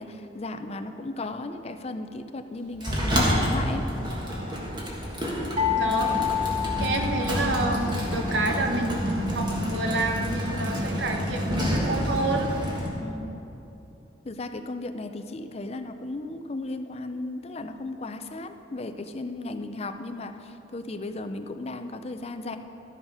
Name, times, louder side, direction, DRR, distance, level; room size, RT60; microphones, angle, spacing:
voice 1, 0.0-3.9 13.0-13.4 14.2-22.6, left 2 dB, 35° left, 8 dB, 0.5 m, -35 dB
Sliding door, 2.8-12.9, equal, 25° right, 1.6 m, -28 dB
sound 1, 5.6-7.7, left 8 dB, 40° right, 1.1 m, -28 dB
voice 2, 5.7-6.4 6.8-12.5, right 2 dB, 75° right, 3 dB, 1.1 m, -29 dB
13.0 x 7.1 x 5.5 m, 2.9 s
head